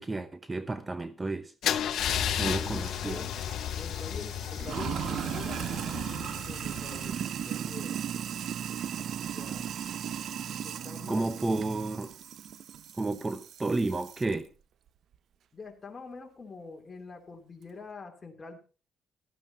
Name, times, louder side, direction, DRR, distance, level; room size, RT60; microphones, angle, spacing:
voice 1, 0.0-1.5 2.4-3.3 11.1-12.1 13.0-14.5, right 2 dB, 20° right, 0.9 m, -31 dB
Car / Engine starting / Idling, 1.6-7.5, left 9 dB, 70° left, 0.9 m, -33 dB
Sink (filling or washing), 2.0-14.3, right 9 dB, 65° right, 0.6 m, -37 dB
voice 2, 2.3-3.3 3.8-8.0 9.2-9.7 10.6-11.8 15.5-18.6, left 4 dB, 30° left, 3.0 m, -46 dB
15.0 x 13.0 x 2.9 m
cardioid pair, 90°, 0 cm